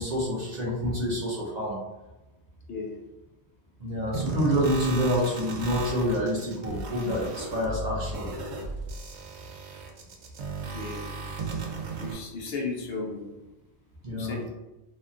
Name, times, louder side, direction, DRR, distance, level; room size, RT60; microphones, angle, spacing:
voice 1, 0.0-1.8 3.8-8.3 14.0-14.4, equal, 50° right, -4 dB, 0.5 m, -27 dB
sound 1, 4.1-12.1, right 3 dB, 80° right, 0.8 m, -35 dB
voice 2, 10.7-11.0 12.0-13.3 14.1-14.5, left 3 dB, 65° left, 0 dB, 0.8 m, -34 dB
2.7 x 2.3 x 2.4 m, 1.0 s
omnidirectional pair, 1.1 m